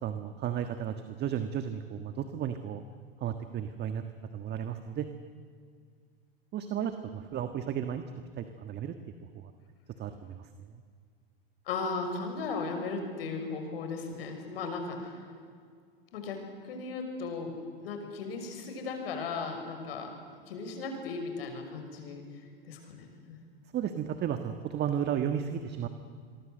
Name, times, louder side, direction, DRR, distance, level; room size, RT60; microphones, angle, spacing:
voice 1, 0.0-2.8 3.2-4.0 4.3-5.1 6.5-8.0 8.4-8.9 9.3-9.5 10.0-10.8 23.7-25.9, right 9 dB, 35° right, 8 dB, 1.5 m, -34 dB
voice 2, 11.7-15.2 16.1-17.5 17.8-20.1 20.5-23.4, left 4 dB, 75° left, 5 dB, 6.0 m, -36 dB
28.0 x 23.0 x 7.8 m, 2.1 s
hypercardioid pair, 105°, 30 cm